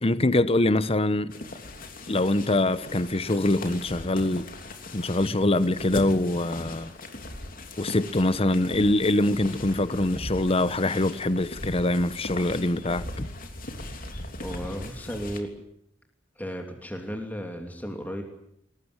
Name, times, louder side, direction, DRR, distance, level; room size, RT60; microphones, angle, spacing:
voice 1, 0.0-1.3 2.1-4.5 4.9-6.9 7.8-13.3, left 1 dB, 30° left, 1.0 m, -24 dB
sound 1, 1.3-15.4, left 1 dB, 45° left, 3.3 m, -39 dB
voice 2, 14.4-15.5 16.4-18.2, equal, 10° left, 3.0 m, -34 dB
22.0 x 19.5 x 9.9 m
head